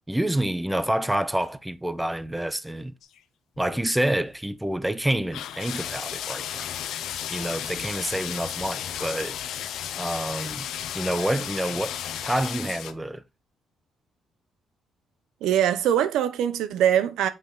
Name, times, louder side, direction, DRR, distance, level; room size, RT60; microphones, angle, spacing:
voice 1, 0.1-2.9 3.6-6.7 7.3-9.4 10.0-10.7 10.9-12.0 12.2-13.2, right 1 dB, 5° right, 0.6 m, -28 dB
sound 1, 3.0-3.2 3.6-3.9 5.3-12.9, left 10 dB, 80° left, 0.7 m, -34 dB
voice 2, 15.4-17.3, right 10 dB, 85° right, 0.7 m, -22 dB
6.0 x 5.3 x 3.8 m
cardioid pair, 90°, 0 cm